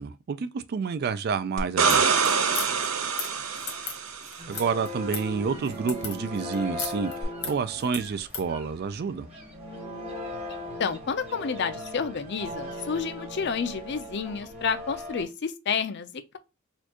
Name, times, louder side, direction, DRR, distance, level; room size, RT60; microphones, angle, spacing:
voice 1, 0.0-2.0 4.5-7.1 7.4-9.3, right 5 dB, 45° right, 0.3 m, -29 dB
sound 1, 1.6-4.4 7.2-7.3, right 6 dB, 75° right, 0.7 m, -25 dB
sound 2, 1.8-8.5, left 6 dB, 85° left, 1.3 m, -37 dB
sound 3, 4.4-15.2, left 1 dB, 25° right, 1.2 m, -39 dB
voice 2, 10.5-16.4, left 6 dB, 50° left, 0.5 m, -30 dB
4.3 x 2.4 x 2.9 m
head